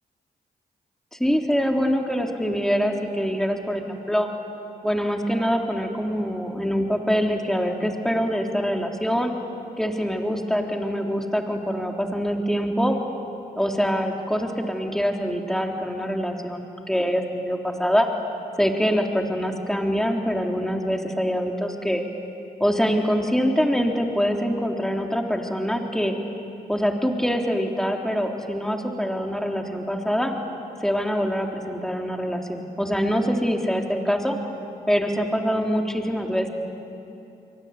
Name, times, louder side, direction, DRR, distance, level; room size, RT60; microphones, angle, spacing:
voice 1, 1.1-4.3 4.8-9.3 9.8-13.0 13.6-18.1 18.6-22.0 22.6-26.1 26.7-30.3 30.8-34.4 34.9-36.5, equal, ahead, 2 dB, 3.7 m, -24 dB
28.5 x 23.5 x 8.5 m, 2.9 s
supercardioid pair, 45°, 19 cm